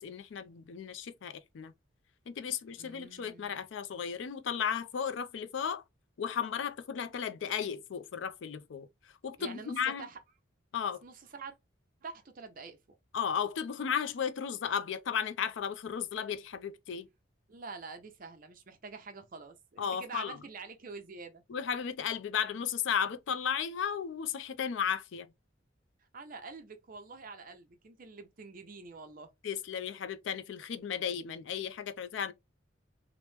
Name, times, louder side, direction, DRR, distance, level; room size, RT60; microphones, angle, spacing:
voice 1, 0.0-1.7 2.3-5.8 6.2-8.9 9.2-10.1 10.7-11.0 13.1-17.1 19.8-20.4 21.5-25.3 29.4-32.3, left 7 dB, 70° left, 0.4 m, -34 dB
voice 2, 2.8-3.6 9.4-10.2 11.0-11.6 12.0-12.8 17.5-21.4 26.0-29.3, right 4 dB, 45° right, 0.5 m, -46 dB
2.9 x 2.1 x 3.2 m
head